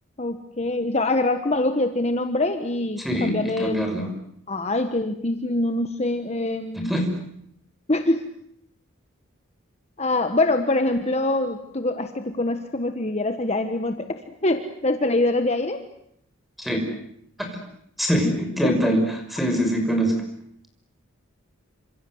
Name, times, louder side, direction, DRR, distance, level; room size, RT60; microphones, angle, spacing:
voice 1, 0.2-3.9 4.5-7.0 7.9-8.2 10.0-15.8 18.2-18.3 18.6-18.7, left 2 dB, 30° left, 7 dB, 1.3 m, -24 dB
voice 2, 3.0-4.1 6.7-7.1 16.6-16.9 17.4-17.6 18.0-20.1, equal, ahead, 4 dB, 6.0 m, -24 dB
27.5 x 27.0 x 7.9 m, 0.73 s
head